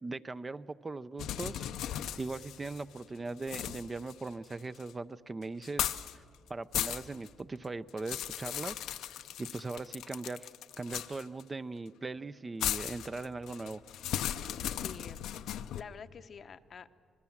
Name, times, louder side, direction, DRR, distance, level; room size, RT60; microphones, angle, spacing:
voice 1, 0.0-1.7 2.2-6.2 6.5-8.8 9.1-10.5 10.8-13.8, right 3 dB, 25° right, 13 dB, 0.5 m, -40 dB
sound 1, 1.2-3.0 3.4-4.9 5.6-6.1 6.5-7.3 7.6-11.4 12.6-15.8, left 11 dB, 85° left, 0.7 m, -37 dB
voice 2, 14.8-15.3 15.8-16.9, left 6 dB, 50° left, 12 dB, 0.7 m, -47 dB
25.5 x 21.0 x 7.2 m, 2.2 s
cardioid pair, 90°, 0 cm